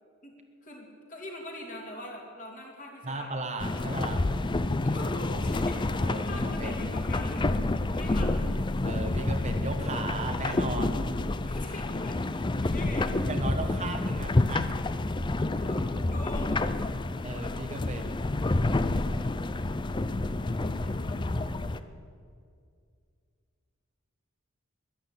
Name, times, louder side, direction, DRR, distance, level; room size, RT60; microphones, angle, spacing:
voice 1, 0.6-3.3 3.6-4.2 4.8-7.5 7.9-8.5 11.5-12.2 12.5-13.2 15.6-15.8 16.1-16.6 20.4-21.5, left 1 dB, 35° left, 0 dB, 2.8 m, -43 dB
voice 2, 3.0-4.2 6.0-6.8 8.8-11.1 13.3-14.7 17.1-18.2, right 2 dB, 30° right, 5 dB, 1.1 m, -36 dB
sound 1, 3.6-21.8, left 2 dB, 20° left, 0.4 m, -29 dB
12.5 x 11.5 x 9.0 m, 2.3 s
head